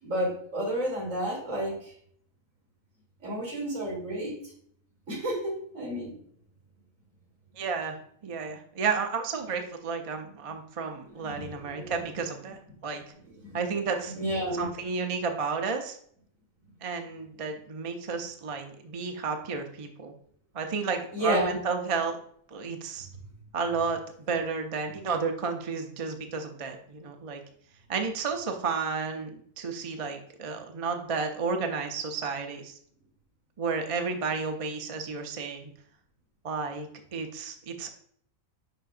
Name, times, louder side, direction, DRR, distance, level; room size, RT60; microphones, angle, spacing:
voice 1, 0.0-1.9 3.2-4.4 5.1-6.1 11.2-11.9 13.4-13.6 14.1-14.7 21.1-21.5, right 1 dB, 65° right, -3 dB, 3.4 m, -31 dB
voice 2, 7.5-13.0 13.5-14.1 14.5-16.0 16.8-20.1 20.5-22.2 22.5-23.1 23.5-24.0 24.3-27.4 27.9-32.8 33.6-35.7 36.4-37.9, right 5 dB, 40° right, 4 dB, 0.5 m, -32 dB
10.0 x 3.9 x 2.5 m, 0.62 s
omnidirectional pair, 1.4 m